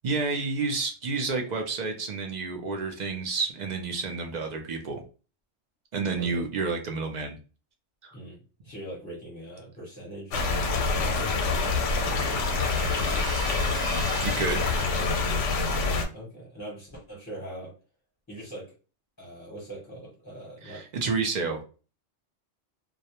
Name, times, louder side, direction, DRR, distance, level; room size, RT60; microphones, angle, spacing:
voice 1, 0.0-5.0 5.9-7.4 8.0-8.1 14.2-14.7 20.6-21.6, right 4 dB, 60° right, 4 dB, 0.4 m, -30 dB
voice 2, 8.1-11.9 12.7-13.1 16.1-17.7 18.3-18.7 19.2-20.8, right 1 dB, 20° left, -4 dB, 0.6 m, -42 dB
sound 1, 10.3-16.0, left 4 dB, 85° left, 0.9 m, -26 dB
Trumpet, 11.1-15.1, right 6 dB, 80° right, 0.9 m, -41 dB
2.3 x 2.0 x 2.8 m, 0.35 s
omnidirectional pair, 1.2 m